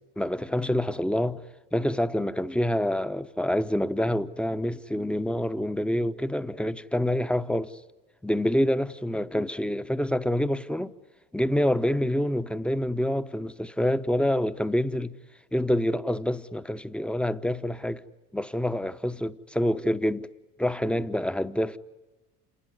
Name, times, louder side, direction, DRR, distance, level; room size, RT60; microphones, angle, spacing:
voice 1, 0.2-1.4 1.7-7.7 8.2-10.9 11.3-15.1 15.5-18.0 18.3-20.3 20.6-21.8, left 1 dB, ahead, 1.0 m, -27 dB
28.0 x 19.5 x 9.5 m
hypercardioid pair, 65°, 46 cm